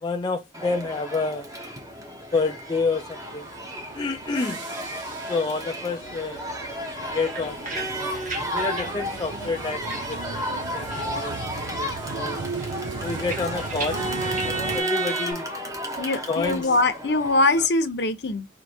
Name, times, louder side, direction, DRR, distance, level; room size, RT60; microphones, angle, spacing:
voice 1, 0.0-1.5 2.3-3.5 3.9-4.6 5.3-6.4 7.1-8.1 8.5-12.4 13.0-14.1 14.4-15.5 16.3-16.7, left 4 dB, 25° left, 0.4 m, -29 dB
Crowd, 0.5-17.7, equal, 20° right, 0.9 m, -32 dB
sound 1, 3.2-14.8, right 5 dB, 70° right, 0.5 m, -37 dB
sound 2, 6.9-10.6 10.9-11.8 12.1-15.3, right 3 dB, 45° right, 1.4 m, -39 dB
voice 2, 16.0-18.5, left 2 dB, 60° left, 0.8 m, -23 dB
4.7 x 2.8 x 2.7 m
head